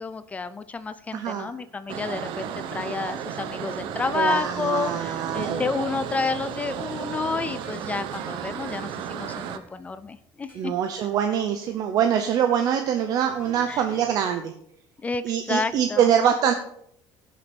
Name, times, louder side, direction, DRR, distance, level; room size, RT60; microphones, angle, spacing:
voice 1, 0.0-10.7 13.7-13.8 15.0-16.1, left 4 dB, 15° left, 13 dB, 0.4 m, -30 dB
voice 2, 1.1-1.5 4.1-5.7 10.5-14.5 15.2-16.5, right 9 dB, 50° right, 6 dB, 0.8 m, -24 dB
sound 1, 1.9-9.6, right 8 dB, 70° right, 1.0 m, -34 dB
sound 2, 3.8-10.2 10.5-10.9 13.2-14.2, right 2 dB, 15° right, 3.0 m, -45 dB
16.5 x 6.7 x 4.5 m, 0.72 s
cardioid pair, 170°, 8 cm